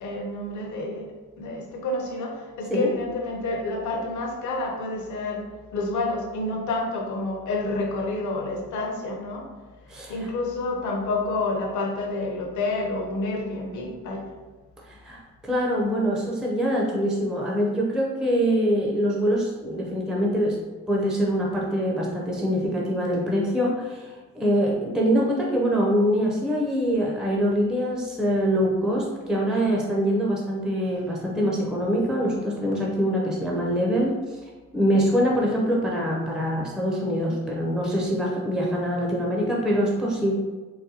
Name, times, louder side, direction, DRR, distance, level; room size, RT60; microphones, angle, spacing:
voice 1, 0.0-5.4 5.7-9.5 10.1-14.3, left 2 dB, 75° left, 0 dB, 0.8 m, -29 dB
voice 2, 9.9-10.3 14.9-20.6 20.9-34.1 34.7-40.3, equal, ahead, -3 dB, 0.5 m, -24 dB
4.0 x 2.2 x 2.7 m, 1.3 s
cardioid pair, 90°, 30 cm